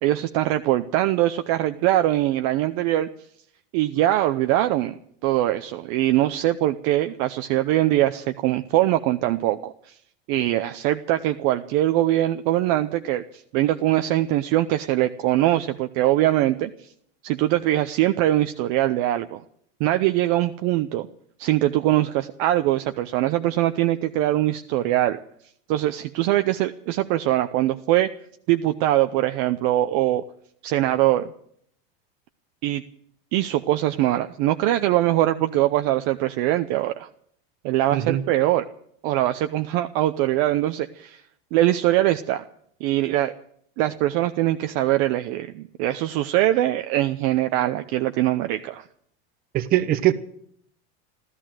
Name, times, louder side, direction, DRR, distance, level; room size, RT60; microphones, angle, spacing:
voice 1, 0.0-3.1 3.7-5.0 5.2-9.9 10.3-16.7 17.2-19.4 19.8-21.1 21.4-25.2 25.7-28.1 28.5-30.2 30.6-31.3 32.6-32.8 33.3-37.1 37.6-38.6 39.0-41.2 41.5-42.4 42.8-43.3 43.8-48.8, right 14 dB, 45° right, 8 dB, 0.7 m, -22 dB
voice 2, 37.9-38.2 49.5-50.1, right 14 dB, 30° right, 12 dB, 1.0 m, -21 dB
14.0 x 14.0 x 7.6 m, 0.67 s
supercardioid pair, 160°, 30 cm